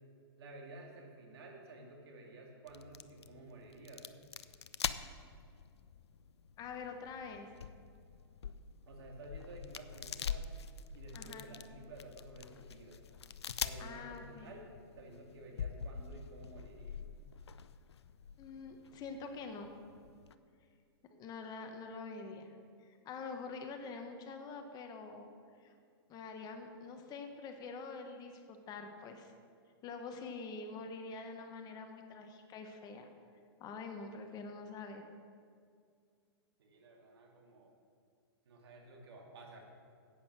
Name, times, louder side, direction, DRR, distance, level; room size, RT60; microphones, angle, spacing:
voice 1, 0.4-4.1 8.9-10.5 10.9-13.0 13.6-14.7 14.9-17.1 36.6-37.7 38.4-39.6, right 2 dB, 70° right, 0 dB, 2.6 m, -52 dB
sound 1, 2.7-20.3, left 7 dB, 85° left, 0.5 m, -45 dB
voice 2, 6.6-7.5 11.1-11.5 13.8-14.5 18.4-19.7 21.2-22.5 22.8-25.3 25.6-25.7 26.1-29.3 29.8-33.1 33.6-35.0, left 4 dB, 30° left, 5 dB, 1.3 m, -46 dB
11.0 x 8.6 x 6.2 m, 2.2 s
hypercardioid pair, 120°, 14 cm